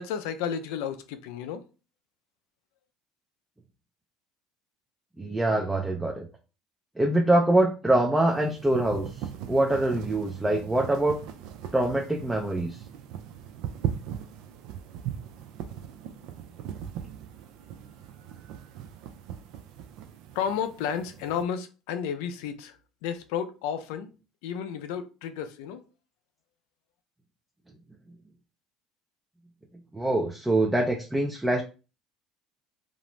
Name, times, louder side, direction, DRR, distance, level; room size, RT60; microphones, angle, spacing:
voice 1, 0.0-1.6 20.3-22.8 23.0-24.1 24.4-25.8, left 8 dB, 85° left, 0.3 m, -32 dB
voice 2, 5.2-6.3 7.0-9.1 9.5-11.2 11.7-12.8 29.9-31.6, right 1 dB, 10° right, 0.4 m, -24 dB
sound 1, 8.2-21.4, right 9 dB, 75° right, 0.3 m, -39 dB
2.5 x 2.0 x 3.0 m
supercardioid pair, 100°, 0 cm